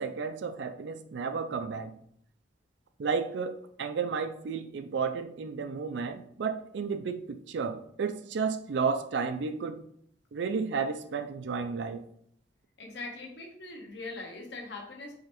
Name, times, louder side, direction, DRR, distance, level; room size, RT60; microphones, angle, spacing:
voice 1, 0.0-1.9 3.0-9.8 10.3-12.0, right 5 dB, 70° right, 9 dB, 0.4 m, -32 dB
voice 2, 12.8-15.1, left 3 dB, 65° left, 1 dB, 1.0 m, -41 dB
4.8 x 3.2 x 3.0 m, 0.67 s
head